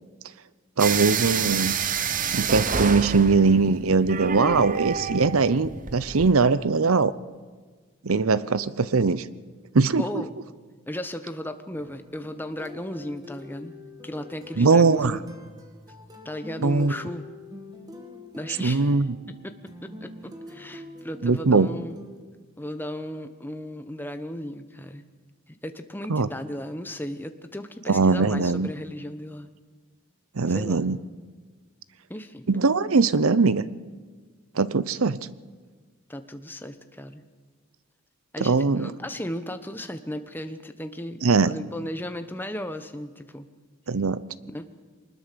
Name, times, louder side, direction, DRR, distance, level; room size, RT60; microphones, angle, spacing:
sound 1, 0.8-6.3, right 6 dB, 35° right, 0.9 m, -28 dB
voice 1, 0.8-1.7 2.3-7.1 8.0-9.2 9.7-10.2 14.6-15.2 16.6-16.9 18.6-19.2 21.2-21.7 26.1-26.3 27.9-28.7 30.4-31.0 32.5-33.6 34.6-35.2 38.4-38.9 41.2-41.5 43.9-44.2, right 4 dB, 70° right, 17 dB, 0.7 m, -21 dB
voice 2, 10.0-10.3 10.9-13.7 14.0-15.2 16.2-17.3 18.3-18.9 19.4-22.0 22.6-25.0 25.5-29.5 30.5-30.8 32.1-32.5 36.1-37.2 38.3-43.5 44.4-44.7, left 1 dB, 10° left, 8 dB, 1.0 m, -35 dB
sound 2, 11.7-22.2, left 2 dB, 15° right, 2.1 m, -45 dB
23.5 x 20.5 x 6.9 m, 1.5 s
head